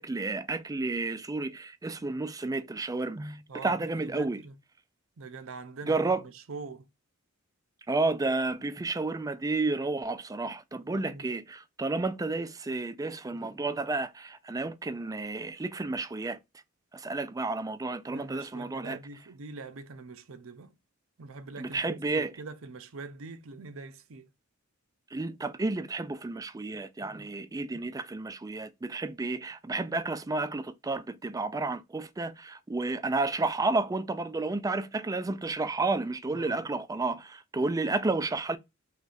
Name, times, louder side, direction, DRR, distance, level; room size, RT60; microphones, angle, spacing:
voice 1, 0.0-4.4 5.9-6.2 7.9-16.4 16.9-19.0 21.6-22.3 25.1-38.6, right 3 dB, 15° right, 0.4 m, -31 dB
voice 2, 3.5-4.5 5.2-6.1 6.5-6.8 10.9-11.3 18.1-20.7 21.2-24.3 36.3-36.7, right 4 dB, 70° right, 0.6 m, -44 dB
4.6 x 3.2 x 2.5 m
head